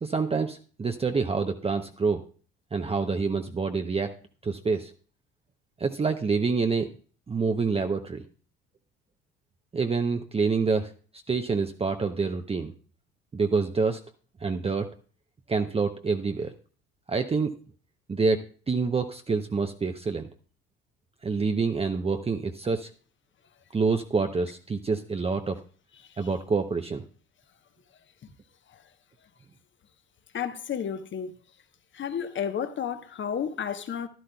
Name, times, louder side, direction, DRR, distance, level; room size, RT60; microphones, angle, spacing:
voice 1, 0.0-2.2 2.7-4.1 4.4-4.9 5.8-6.9 7.3-8.2 9.7-10.9 11.3-12.7 13.3-14.0 14.4-14.9 15.5-16.5 17.1-17.5 18.1-20.3 21.2-22.9 23.7-25.6 26.2-27.0, right 4 dB, 20° right, 0.7 m, -27 dB
voice 2, 30.3-31.3 31.9-34.1, left 8 dB, 40° left, 1.0 m, -31 dB
11.5 x 11.5 x 2.2 m
hypercardioid pair, 60°, 29 cm